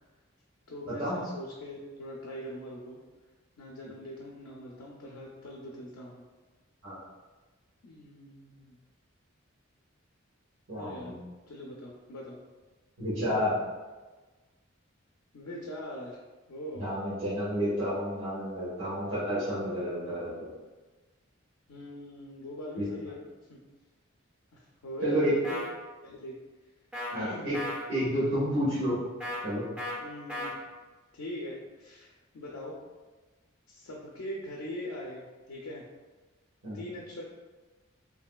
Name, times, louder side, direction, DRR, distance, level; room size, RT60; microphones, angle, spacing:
voice 1, 0.7-3.0 3.6-6.2 7.8-8.8 10.8-12.4 15.3-16.2 16.5-16.9 21.7-23.2 23.5-23.6 24.5-25.6 26.0-26.4 27.1-27.5 30.0-30.7 31.1-32.8 33.7-35.8 36.7-37.2, left 1 dB, 85° left, -3 dB, 0.4 m, -42 dB
voice 2, 10.7-11.1 13.0-13.5 16.8-20.5 22.8-22.9 25.0-25.3 27.1-27.6 27.9-29.0 29.4-29.6 36.6-36.8, equal, 65° right, -10 dB, 1.1 m, -30 dB
sound 1, 25.4-25.7 26.9-27.1 27.5-27.8 29.2-29.4 29.8-30.0 30.3-30.5, left 1 dB, 5° right, 0.4 m, -35 dB
2.9 x 2.6 x 2.3 m, 1.3 s
head